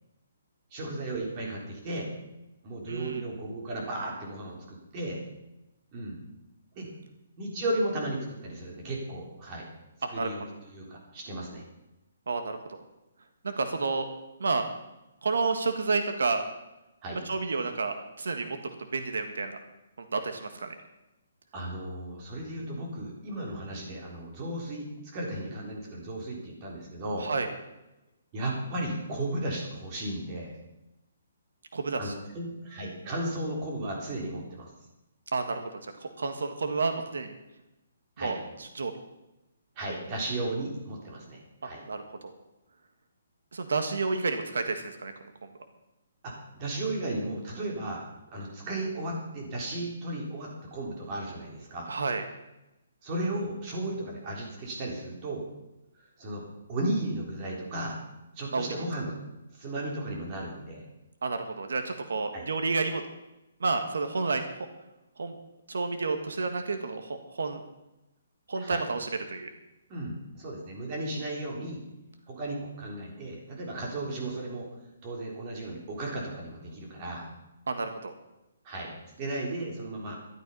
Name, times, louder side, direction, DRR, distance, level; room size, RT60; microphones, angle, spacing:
voice 1, 0.7-2.1 2.6-5.2 5.9-6.2 6.7-6.9 7.4-9.7 10.1-11.6 17.0-17.2 21.5-27.3 28.3-30.5 32.0-34.7 38.2-38.4 39.7-41.8 46.2-48.1 48.3-51.9 53.0-55.4 56.2-56.4 56.7-58.0 58.3-59.2 59.5-60.9 62.3-62.5 68.6-68.8 69.9-71.8 72.3-74.7 75.0-77.3 78.6-78.9 79.2-80.2, right 1 dB, 25° right, -1 dB, 3.5 m, -35 dB
voice 2, 2.9-3.2 10.0-10.3 12.3-12.8 13.4-14.1 14.4-14.6 15.2-16.4 17.2-19.6 20.1-20.7 27.2-27.5 31.7-32.1 35.3-37.3 38.2-38.9 41.6-42.3 43.5-45.1 45.4-45.5 51.9-52.2 58.5-58.7 61.2-63.0 63.6-64.4 65.2-65.3 65.7-67.6 68.5-69.5 77.7-78.1, right 4 dB, 85° right, 6 dB, 1.7 m, -30 dB
13.0 x 12.0 x 5.6 m, 0.95 s
hypercardioid pair, 165°, 0 cm